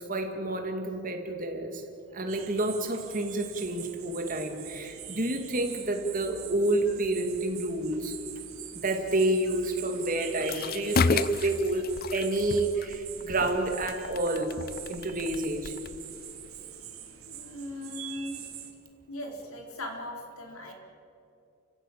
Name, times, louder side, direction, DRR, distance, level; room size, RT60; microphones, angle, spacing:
voice 1, 0.1-1.8 2.1-8.1 8.8-14.6 14.9-15.7, right 2 dB, 40° right, 4 dB, 2.3 m, -29 dB
sound 1, 2.3-18.7, right 10 dB, 75° right, 2.3 m, -44 dB
sound 2, 10.4-16.6, left 5 dB, 45° left, 0.5 m, -33 dB
voice 2, 17.3-18.4 19.1-20.7, left 1 dB, 80° left, 2 dB, 4.2 m, -39 dB
29.0 x 15.5 x 8.5 m, 2.7 s
head